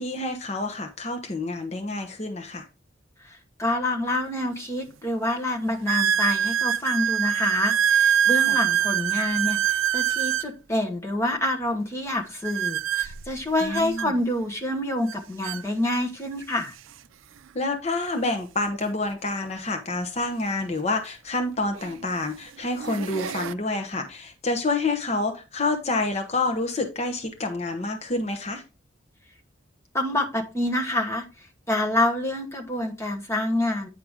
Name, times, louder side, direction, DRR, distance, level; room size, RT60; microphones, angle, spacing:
voice 1, 0.0-2.6 8.5-8.6 13.6-14.1 17.5-28.6, left 2 dB, 35° left, 5 dB, 0.9 m, -28 dB
voice 2, 3.2-16.7 29.9-33.9, left 1 dB, 15° left, 2 dB, 1.2 m, -27 dB
sound 1, 4.1-4.2 4.9-5.0 5.9-10.5 12.4-14.1 15.1-15.2 15.4-15.6 16.4-16.5 18.7-18.8 20.9-21.0 21.7-22.0 22.6-23.5, right 9 dB, 85° right, 0.4 m, -24 dB
9.4 x 4.8 x 3.6 m, 0.29 s
head